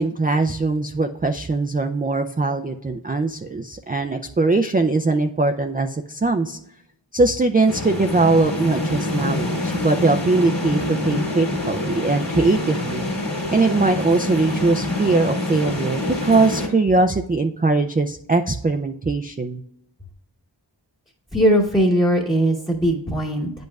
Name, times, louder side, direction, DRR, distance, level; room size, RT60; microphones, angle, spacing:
voice 1, 0.0-6.6 7.1-13.1 13.5-19.6, right 3 dB, 20° right, 6 dB, 0.3 m, -21 dB
sound 1, 7.7-16.7, left 1 dB, 50° left, 1.9 m, -26 dB
voice 2, 21.3-23.5, equal, 10° left, -3 dB, 0.9 m, -19 dB
8.8 x 5.3 x 2.3 m, 0.78 s
wide cardioid pair, 50°, 46 cm